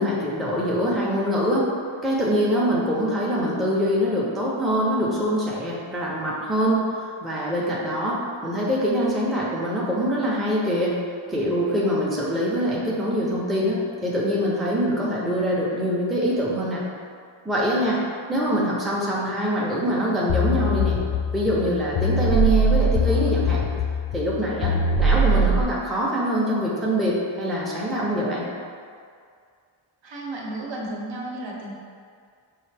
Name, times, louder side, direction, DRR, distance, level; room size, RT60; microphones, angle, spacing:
voice 1, 0.0-1.7 2.0-11.0 11.3-16.8 17.4-18.0 18.3-21.0 21.3-23.6 24.1-28.4, equal, ahead, -6 dB, 0.5 m, -24 dB
sound 1, 20.3-25.6, equal, 65° left, 0.5 m, -22 dB
voice 2, 30.0-31.7, right 1 dB, 60° right, -3 dB, 0.8 m, -33 dB
5.5 x 2.4 x 3.3 m, 2.2 s
wide cardioid pair, 135°, 50 cm